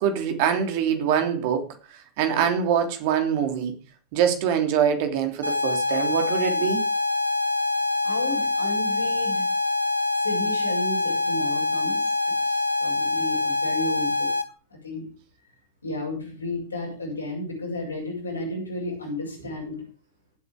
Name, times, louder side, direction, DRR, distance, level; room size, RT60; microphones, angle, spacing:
voice 1, 0.0-3.7 4.1-6.8, right 8 dB, 50° right, 6 dB, 3.1 m, -24 dB
sound 1, 5.4-14.4, left 3 dB, 85° right, 1.3 m, -25 dB
voice 2, 8.0-9.5 10.2-12.0 12.4-14.3 14.7-15.0 15.8-19.8, left 1 dB, 80° left, -1 dB, 7.1 m, -33 dB
17.5 x 8.4 x 5.1 m, 0.36 s
figure-of-eight pair, 90°, 0 cm